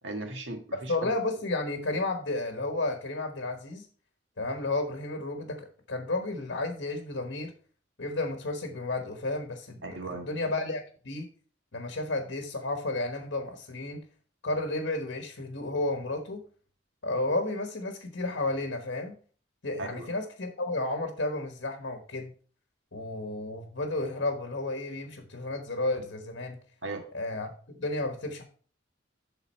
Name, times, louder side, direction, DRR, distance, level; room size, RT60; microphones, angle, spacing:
voice 1, 0.0-1.0 9.8-10.3 19.8-20.2 26.8-27.1, right 2 dB, 70° right, 4 dB, 1.6 m, -37 dB
voice 2, 0.9-3.9 4.4-7.5 8.0-11.3 11.7-14.0 14.4-16.4 17.0-19.1 19.6-22.3 22.9-26.6 27.1-27.5 27.8-28.4, left 2 dB, 65° left, 5 dB, 1.1 m, -32 dB
11.5 x 3.9 x 4.3 m, 0.43 s
head